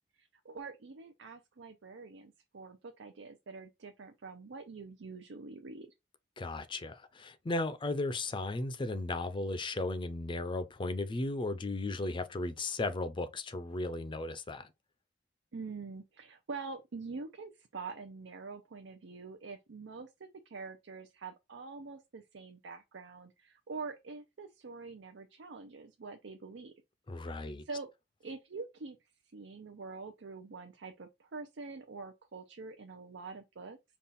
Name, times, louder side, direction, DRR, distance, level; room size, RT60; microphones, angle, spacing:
voice 1, 0.2-5.9 15.5-26.7 27.2-27.9 28.2-29.0 29.3-33.8, right 4 dB, 85° right, 0.6 m, -45 dB
voice 2, 6.4-14.7 27.1-27.6, left 2 dB, 25° left, 0.5 m, -35 dB
5.4 x 2.4 x 4.1 m
head